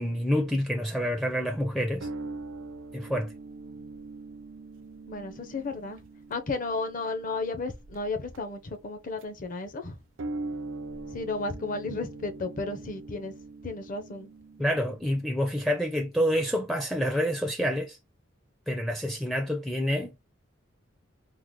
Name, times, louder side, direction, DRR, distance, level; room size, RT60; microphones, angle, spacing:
voice 1, 0.0-2.1 2.9-3.3 14.6-18.0 18.7-20.1, equal, ahead, 0.4 m, -28 dB
sound 1, 0.9-9.5 10.2-15.1, right 2 dB, 80° right, 0.6 m, -42 dB
voice 2, 5.1-6.0 6.3-10.0 11.1-13.3 13.6-14.3, left 3 dB, 45° left, 0.6 m, -33 dB
3.7 x 2.0 x 3.1 m
head